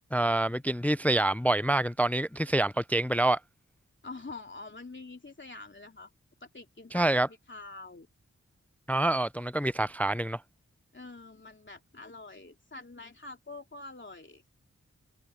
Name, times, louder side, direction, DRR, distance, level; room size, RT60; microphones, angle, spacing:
voice 1, 0.1-3.4 6.9-7.3 8.9-10.4, right 1 dB, 5° left, 0.4 m, -26 dB
voice 2, 4.0-6.1 6.4-8.1 10.9-14.4, left 3 dB, 40° left, 3.1 m, -46 dB
cardioid pair, 40°, 29 cm